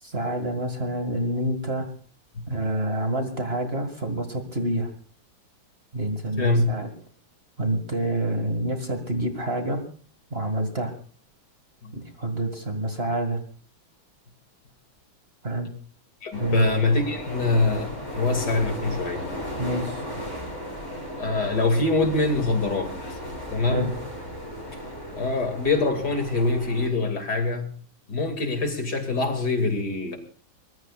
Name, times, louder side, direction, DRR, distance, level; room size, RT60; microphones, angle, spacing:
voice 1, 0.0-1.9 2.5-4.9 5.9-6.9 7.6-9.8 10.3-10.9 11.9-13.4 15.4-15.7 16.4-16.7 19.6-20.0 23.7-23.9, right 1 dB, 30° right, 5 dB, 2.3 m, -27 dB
voice 2, 6.3-6.7 11.8-11.9 16.2-19.3 21.2-23.2 23.5-23.9 25.1-27.7 28.1-30.2, left 3 dB, 55° left, 5 dB, 3.1 m, -24 dB
sound 1, 16.3-26.9, equal, 20° left, 6.7 m, -35 dB
23.0 x 21.0 x 2.5 m, 0.42 s
omnidirectional pair, 2.1 m